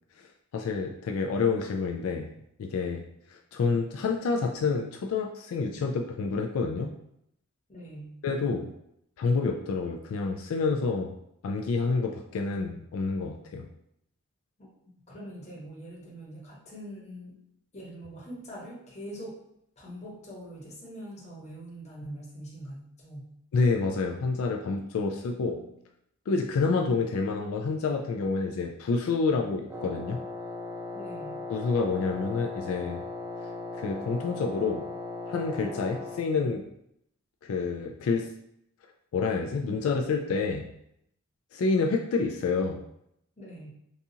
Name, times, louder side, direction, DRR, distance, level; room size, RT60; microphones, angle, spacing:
voice 1, 0.5-2.3 2.6-3.0 3.5-6.9 8.2-8.7 9.2-11.1 11.4-13.7 23.5-25.6 26.3-30.2 31.5-33.0 33.7-34.8 35.3-36.6 37.4-38.3 39.1-40.7 41.5-42.8, left 4 dB, 80° left, 1 dB, 0.3 m, -28 dB
voice 2, 7.7-8.1 14.6-14.7 15.1-17.4 17.7-19.4 19.8-23.3 25.3-25.8 30.9-31.4 43.4-43.7, equal, 35° left, -4 dB, 1.0 m, -43 dB
Wind instrument woodwind instrument, 29.7-36.3, left 2 dB, 15° right, 0.4 m, -38 dB
4.0 x 2.4 x 2.7 m, 0.77 s
head